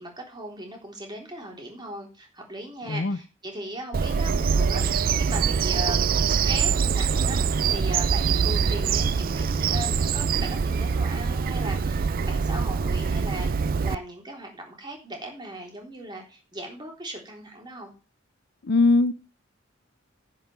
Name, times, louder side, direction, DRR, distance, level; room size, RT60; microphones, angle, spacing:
voice 1, 0.0-17.9, right 1 dB, 25° right, 3.6 m, -38 dB
voice 2, 2.9-3.2 18.6-19.1, left 3 dB, 55° left, 0.6 m, -20 dB
Bird vocalization bird call bird song, 3.9-14.0, right 6 dB, 45° right, 0.4 m, -24 dB
10.5 x 5.6 x 6.7 m
head